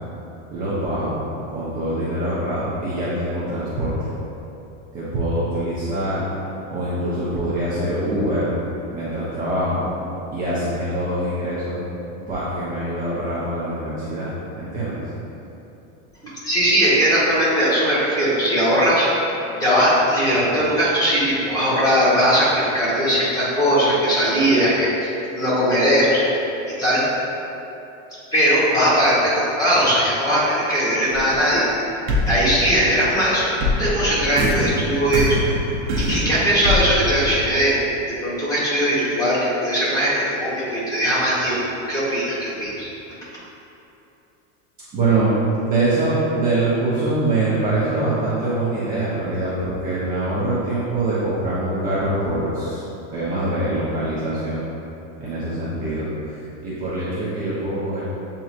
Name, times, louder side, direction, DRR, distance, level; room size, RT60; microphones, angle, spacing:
voice 1, 0.5-1.2 1.5-3.9 4.9-6.2 6.7-8.5 8.9-9.9 10.3-11.8 12.3-15.0 44.9-45.3 45.6-52.8 53.1-54.6 55.2-58.0, right 2 dB, 25° right, -9 dB, 0.6 m, -24 dB
voice 2, 16.2-19.1 19.6-26.3 26.8-27.0 28.3-31.7 32.3-33.5 33.8-35.5 36.0-37.8 38.2-41.6 41.9-42.9, equal, 10° left, -10 dB, 1.1 m, -19 dB
sound 1, 31.1-31.7 32.1-37.9, left 1 dB, 60° right, 0.8 m, -24 dB
7.5 x 2.8 x 2.4 m, 2.9 s
supercardioid pair, 155°, 36 cm